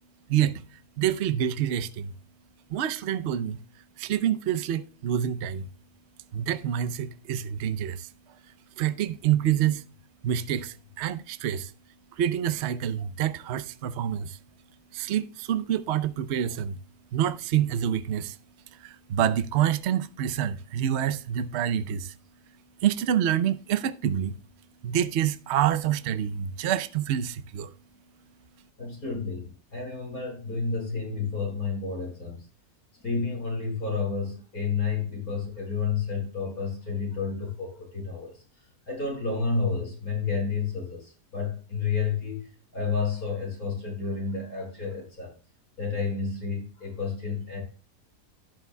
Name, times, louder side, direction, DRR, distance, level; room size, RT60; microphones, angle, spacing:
voice 1, 0.3-0.6 1.0-2.1 2.7-3.6 4.0-5.7 6.3-8.1 8.8-9.8 10.2-11.7 12.2-14.4 14.9-16.8 17.1-18.4 18.8-22.1 22.8-24.4 24.8-27.7, right 10 dB, 55° right, 0.8 m, -27 dB
voice 2, 28.8-32.5 33.0-38.4 38.9-45.3 45.8-47.6, left 5 dB, 70° left, 5.5 m, -30 dB
12.0 x 11.0 x 2.2 m
omnidirectional pair, 1.6 m